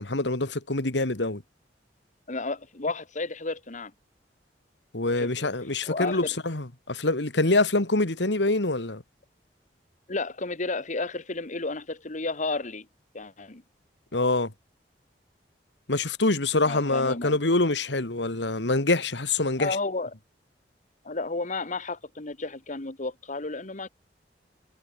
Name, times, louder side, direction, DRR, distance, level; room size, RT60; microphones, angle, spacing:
voice 1, 0.0-1.4 4.9-9.0 14.1-14.5 15.9-19.8, left 2 dB, 80° left, 2.2 m, -25 dB
voice 2, 2.3-3.9 5.2-5.5 5.8-6.2 10.1-12.9 13.1-13.6 16.7-17.3 19.6-20.1 21.0-23.9, left 3 dB, 45° left, 1.7 m, -32 dB
head